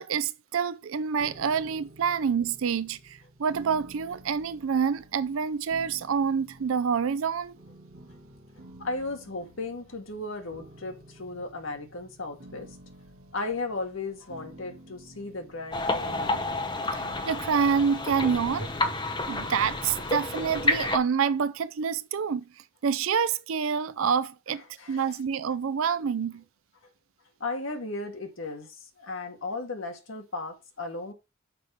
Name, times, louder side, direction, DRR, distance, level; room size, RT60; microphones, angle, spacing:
voice 1, 0.0-7.5 16.9-18.7 19.3-22.5 22.8-24.6 24.9-26.4, right 6 dB, 70° right, 0.4 m, -27 dB
sound 1, 1.2-20.1, right 1 dB, 55° right, 2.1 m, -52 dB
voice 2, 8.8-12.8 13.3-16.5 24.8-25.1 26.8-26.9 27.4-31.1, left 3 dB, 65° left, 1.6 m, -36 dB
sound 2, 15.7-21.0, left 2 dB, 20° left, 0.8 m, -30 dB
6.8 x 5.7 x 5.0 m
head